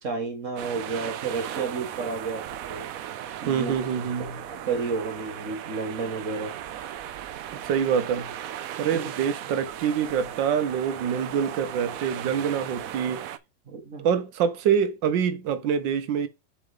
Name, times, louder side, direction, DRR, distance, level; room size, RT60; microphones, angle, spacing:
voice 1, 0.0-2.9 3.4-3.8 4.2-6.5 8.9-9.1 13.7-14.1, right 4 dB, 45° right, 2.1 m, -31 dB
sound 1, 0.6-13.4, right 11 dB, 65° right, 0.9 m, -37 dB
voice 2, 3.5-4.3 7.6-8.3 8.8-13.3 14.0-16.3, right 7 dB, 85° right, 1.5 m, -25 dB
7.0 x 3.8 x 5.0 m
omnidirectional pair, 1.9 m